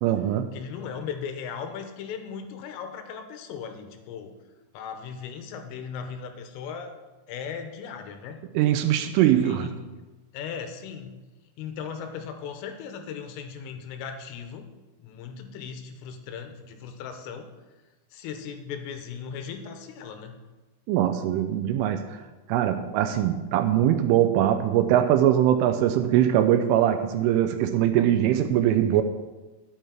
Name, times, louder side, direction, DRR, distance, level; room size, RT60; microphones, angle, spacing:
voice 1, 0.0-0.5 8.6-9.7 20.9-22.2 22.5-29.0, right 11 dB, 85° right, 8 dB, 3.0 m, -22 dB
voice 2, 0.5-4.4 4.7-6.9 7.3-8.4 9.3-9.9 10.3-11.2 11.6-14.7 15.0-17.5 18.1-20.3, left 7 dB, 80° left, 6 dB, 3.5 m, -37 dB
11.5 x 9.2 x 4.5 m, 1.2 s
omnidirectional pair, 6.0 m